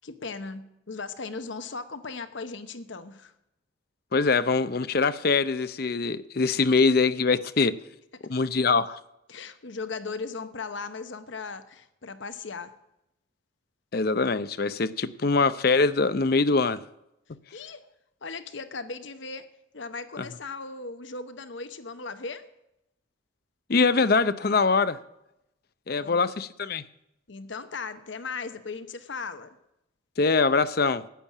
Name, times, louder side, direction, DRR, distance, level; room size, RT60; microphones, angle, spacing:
voice 1, 0.0-3.3 9.3-12.7 17.5-17.8 18.2-19.5 19.7-22.5 26.0-26.3 27.3-29.6, left 4 dB, 65° left, 1.0 m, -37 dB
voice 2, 4.1-7.7 8.2-9.0 13.9-16.8 20.2-20.3 23.7-25.0 25.9-26.8 30.2-31.0, left 4 dB, 50° left, 0.6 m, -23 dB
10.0 x 8.9 x 8.3 m
head